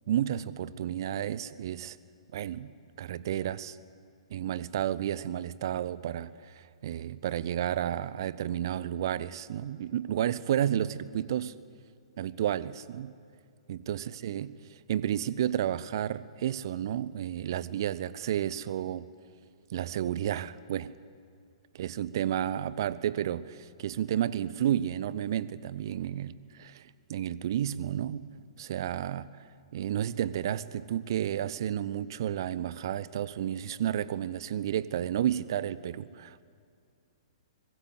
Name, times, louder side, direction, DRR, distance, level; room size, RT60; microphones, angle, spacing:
voice 1, 0.1-2.0 2.3-2.7 3.0-3.8 4.3-11.6 12.2-13.1 13.7-19.1 19.7-21.0 21.8-28.3 28.6-29.4 29.7-36.4, right 11 dB, 50° right, 18 dB, 0.8 m, -31 dB
23.5 x 21.0 x 8.1 m, 2.3 s
figure-of-eight pair, 110°, 3 cm